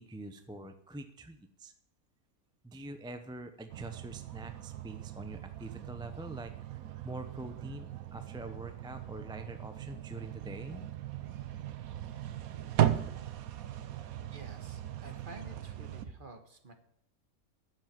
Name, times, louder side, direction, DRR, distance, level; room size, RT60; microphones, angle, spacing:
voice 1, 0.0-1.7 2.6-6.5 7.0-10.8, right 2 dB, 5° right, 8 dB, 0.5 m, -45 dB
sound 1, 3.7-16.0, right 11 dB, 75° right, 1.2 m, -37 dB
voice 2, 14.3-16.7, right 2 dB, 35° right, 6 dB, 1.6 m, -50 dB
9.4 x 7.5 x 9.2 m, 0.73 s
omnidirectional pair, 1.5 m